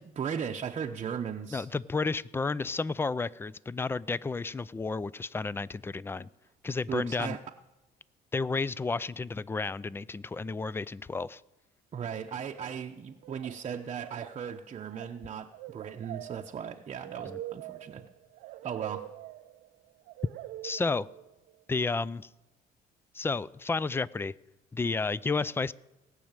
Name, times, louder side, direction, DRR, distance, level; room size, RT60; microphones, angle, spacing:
voice 1, 0.0-1.7 6.9-7.4 11.9-18.1 18.6-19.1, right 7 dB, 35° right, 3 dB, 0.8 m, -37 dB
voice 2, 1.5-6.3 6.6-7.4 8.3-11.4 17.2-17.4 20.6-21.1 21.7-22.3 23.1-24.3 24.7-25.7, left 4 dB, 15° left, 21 dB, 0.4 m, -31 dB
sound 1, 12.5-12.9 13.2-13.7 13.9-21.5, right 15 dB, 85° right, 0.5 m, -44 dB
18.5 x 6.4 x 8.9 m, 1.0 s
cardioid pair, 110°, 17 cm